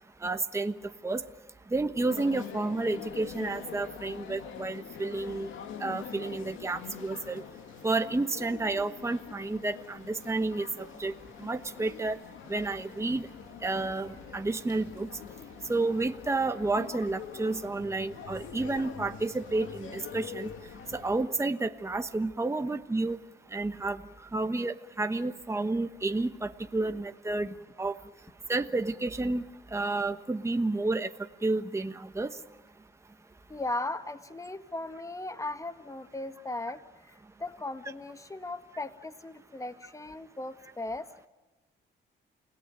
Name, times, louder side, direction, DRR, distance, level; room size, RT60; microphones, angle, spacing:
voice 1, 0.2-0.7 1.0-1.2 1.7-5.5 5.8-7.4 7.8-11.1 11.4-12.2 12.5-13.3 13.6-15.1 15.7-20.5 20.9-23.2 23.5-24.0 24.3-27.5 27.8-28.0 28.5-29.4 29.7-31.1 31.4-32.3, right 2 dB, 15° right, 8 dB, 1.2 m, -30 dB
sound 1, 2.1-21.4, left 8 dB, 85° left, 2.5 m, -44 dB
voice 2, 33.5-36.8 37.1-37.2 37.4-41.3, left 2 dB, 15° left, 10 dB, 1.8 m, -37 dB
29.5 x 18.0 x 9.3 m, 1.2 s
cardioid pair, 90°, 20 cm